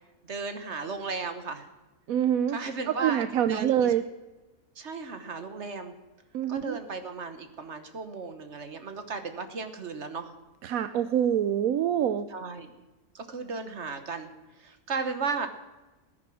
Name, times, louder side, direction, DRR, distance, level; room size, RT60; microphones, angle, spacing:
voice 1, 0.3-1.7 2.5-3.9 4.8-5.9 6.5-10.3 12.3-12.7 13.1-14.3 14.6-15.5, right 4 dB, 55° right, 9 dB, 1.4 m, -35 dB
voice 2, 2.1-2.6 2.9-4.0 6.3-6.8 10.6-12.3, right 9 dB, 80° right, 11 dB, 1.1 m, -25 dB
19.0 x 10.0 x 6.3 m, 1.1 s
omnidirectional pair, 1.5 m